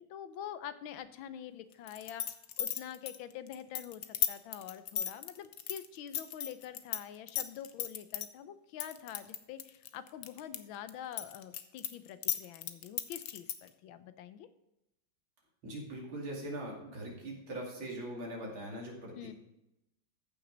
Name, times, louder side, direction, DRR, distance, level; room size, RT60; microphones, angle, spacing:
voice 1, 0.0-14.5 19.1-19.3, left 10 dB, 80° left, 12 dB, 1.5 m, -46 dB
sound 1, 1.9-7.0 7.3-8.3 8.8-10.6 10.9-13.7, left 10 dB, 65° left, 0.9 m, -35 dB
voice 2, 15.6-19.3, right 1 dB, 80° right, -2 dB, 3.4 m, -41 dB
14.5 x 6.2 x 3.9 m, 0.88 s
omnidirectional pair, 2.2 m